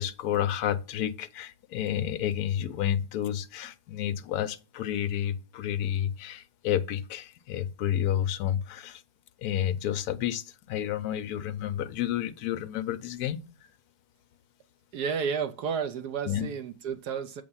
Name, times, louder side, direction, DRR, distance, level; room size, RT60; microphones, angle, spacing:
voice 1, 0.0-9.0 9.4-13.4 16.3-16.5, left 10 dB, 70° left, 1.0 m, -30 dB
voice 2, 14.9-17.4, right 6 dB, 70° right, 1.1 m, -31 dB
7.7 x 3.6 x 5.5 m
omnidirectional pair, 2.0 m